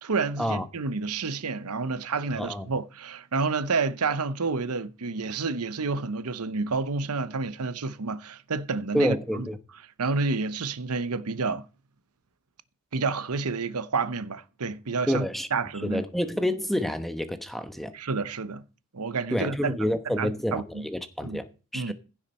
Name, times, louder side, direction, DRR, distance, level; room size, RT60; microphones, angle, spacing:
voice 1, 0.0-9.5 10.0-11.6 12.9-15.3 15.5-16.0 17.9-18.6 18.9-19.8 20.1-20.8 21.2-21.4 21.7-21.9, right 4 dB, 85° right, 0.9 m, -29 dB
voice 2, 2.3-2.7 8.9-9.6 15.1-15.5 15.8-17.9 19.3-21.9, equal, ahead, 1.0 m, -28 dB
15.5 x 7.2 x 4.3 m
head